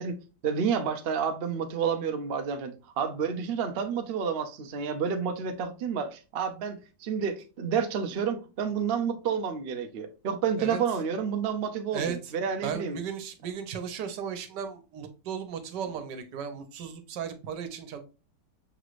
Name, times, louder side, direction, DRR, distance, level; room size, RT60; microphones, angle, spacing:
voice 1, 0.0-13.0, right 6 dB, 65° right, 0.5 m, -30 dB
voice 2, 11.9-12.3 12.6-18.0, right 7 dB, 80° right, 1.4 m, -36 dB
5.9 x 3.1 x 2.5 m
omnidirectional pair, 1.8 m